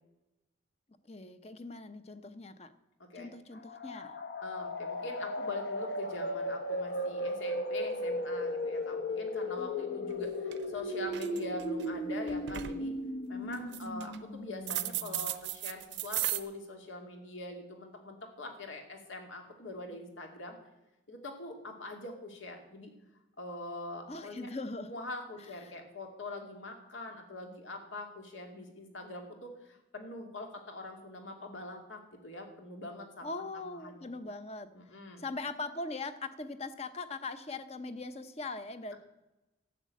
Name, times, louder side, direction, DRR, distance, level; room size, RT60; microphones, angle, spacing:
voice 1, 1.1-2.7 3.1-4.2 9.5-10.3 24.1-24.9 25.4-25.8 33.2-34.7 35.2-38.9, left 3 dB, 35° left, 11 dB, 0.7 m, -41 dB
voice 2, 3.0-3.3 4.4-12.9 13.3-20.6 21.1-22.9 23.4-24.5 24.8-33.2 33.5-34.0 34.7-35.2, left 2 dB, 85° left, 3 dB, 2.5 m, -43 dB
sound 1, 3.6-15.2, left 1 dB, 60° left, 1.0 m, -36 dB
sound 2, 10.1-10.2 10.5-10.8 11.1-11.8 12.3-12.8 13.5-14.2 14.7-16.4, right 14 dB, 65° right, 0.7 m, -35 dB
12.5 x 7.3 x 8.4 m, 0.99 s
head